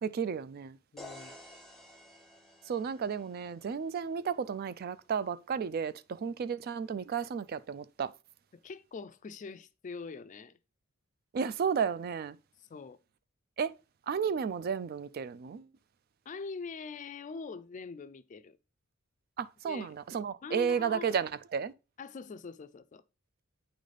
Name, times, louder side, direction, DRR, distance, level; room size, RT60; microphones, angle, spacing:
voice 1, 0.0-0.8 2.7-8.1 11.3-12.4 13.6-13.7 14.1-15.7 19.4-21.7, right 6 dB, 45° right, 0.3 m, -33 dB
voice 2, 0.9-1.4 8.5-10.6 12.6-13.0 16.3-18.6 19.6-20.0 20.4-21.2 22.0-23.0, left 4 dB, 35° left, 0.4 m, -43 dB
sound 1, 1.0-4.8, left 1 dB, ahead, 0.8 m, -53 dB
9.0 x 4.0 x 3.3 m
head